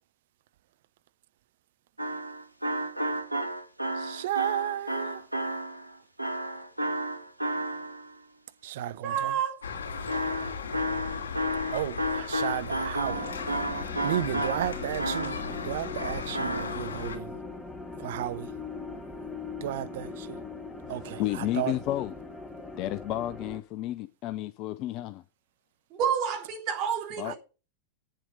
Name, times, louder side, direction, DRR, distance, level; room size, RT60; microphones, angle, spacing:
sound 1, 2.0-8.1 10.1-15.7 16.0-16.8, right 1 dB, 85° right, 0.9 m, -32 dB
voice 1, 4.0-5.2 8.6-9.4 11.7-17.4 18.0-18.5 19.6-20.4 20.9-21.8 27.3-27.4, right 12 dB, 55° right, 0.5 m, -34 dB
voice 2, 9.0-9.6 25.9-27.4, right 8 dB, 40° right, 3.4 m, -29 dB
sound 2, 9.6-17.2, left 5 dB, 65° left, 3.0 m, -37 dB
sound 3, 13.0-23.6, left 3 dB, 5° left, 1.4 m, -41 dB
voice 3, 20.9-22.1 22.8-25.2 27.2-27.3, left 14 dB, 40° left, 0.4 m, -32 dB
8.5 x 7.5 x 5.3 m
figure-of-eight pair, 90°, 0 cm